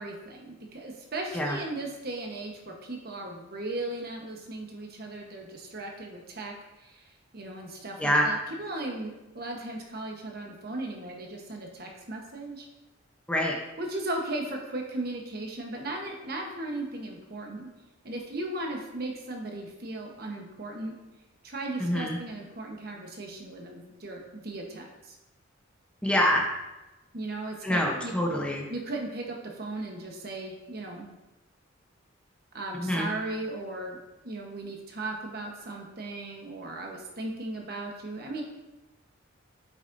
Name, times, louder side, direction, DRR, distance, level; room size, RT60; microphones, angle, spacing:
voice 1, 0.0-7.0 7.3-12.6 13.8-17.7 18.0-20.9 21.4-25.2 27.1-28.1 28.7-31.1 32.5-34.0 34.2-38.4, right 2 dB, 50° right, 1 dB, 1.1 m, -37 dB
voice 2, 21.8-22.2 26.0-26.5 27.6-28.7 32.8-33.1, equal, 5° left, -1 dB, 0.8 m, -25 dB
8.4 x 6.1 x 2.7 m, 1.0 s
head